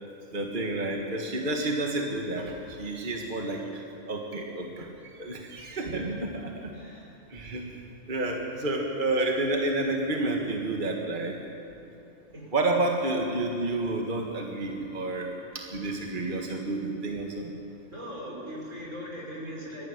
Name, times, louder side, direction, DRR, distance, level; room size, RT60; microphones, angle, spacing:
voice 1, 0.3-3.6 4.1-6.7 7.3-7.8 8.1-11.4 12.5-17.5, right 2 dB, 40° right, 0 dB, 1.9 m, -30 dB
voice 2, 6.7-7.1 12.3-12.5 17.9-19.9, equal, 80° right, -4 dB, 6.1 m, -40 dB
22.5 x 15.0 x 10.0 m, 2.9 s
omnidirectional pair, 1.3 m